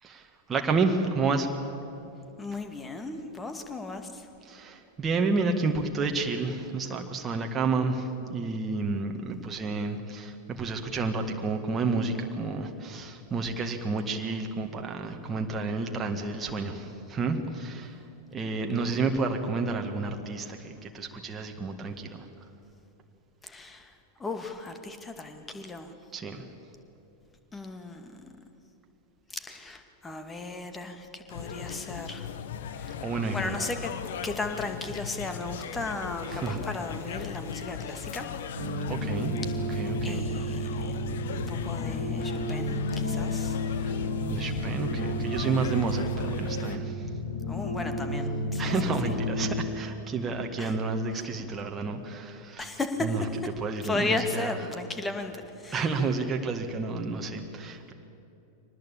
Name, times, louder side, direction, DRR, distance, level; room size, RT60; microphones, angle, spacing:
voice 1, 0.0-1.5 4.5-18.0 18.3-22.3 26.1-26.5 33.0-33.7 36.3-36.6 38.9-39.4 39.8-40.3 43.8-44.0 44.3-47.1 48.6-52.8 53.0-53.2 53.6-54.5 55.7-57.9, right 4 dB, 20° right, 3 dB, 1.8 m, -30 dB
voice 2, 2.4-4.3 23.4-23.9 24.2-25.9 27.5-28.3 29.3-32.3 32.8-33.0 33.3-33.9 34.2-38.3 40.0-43.6 47.5-48.7 50.6-50.7 52.6-53.1 53.8-55.8, left 3 dB, 15° left, 7 dB, 2.2 m, -35 dB
sound 1, 31.3-46.8, left 8 dB, 60° left, 1.2 m, -37 dB
sound 2, 38.6-49.7, equal, 80° left, 5.8 m, -32 dB
24.0 x 19.5 x 8.7 m, 2.8 s
figure-of-eight pair, 90°, 0 cm